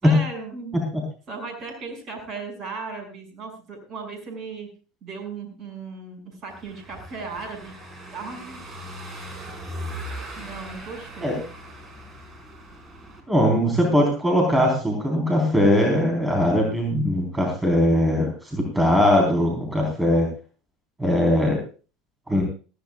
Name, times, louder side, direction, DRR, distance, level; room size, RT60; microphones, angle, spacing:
voice 1, 0.0-0.8 1.3-4.7 5.0-7.7 8.1-8.8 10.4-11.5, right 4 dB, 40° right, 5 dB, 6.1 m, -36 dB
Car passing by / Engine, 6.5-13.2, equal, 25° right, 4.9 m, -39 dB
voice 2, 13.3-20.3 21.0-21.6 22.3-22.4, left 1 dB, 10° right, 1 dB, 4.1 m, -20 dB
18.5 x 15.5 x 2.4 m, 0.36 s
figure-of-eight pair, 70°, 0 cm